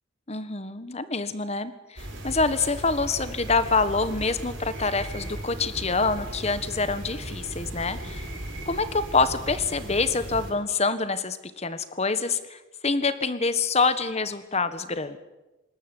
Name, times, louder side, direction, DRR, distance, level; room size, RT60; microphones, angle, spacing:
voice 1, 0.3-8.2 8.6-15.2, left 4 dB, 35° left, 12 dB, 1.4 m, -26 dB
sound 1, 2.0-10.5, right 1 dB, 75° right, 6.4 m, -37 dB
26.0 x 13.5 x 9.8 m, 1.1 s
head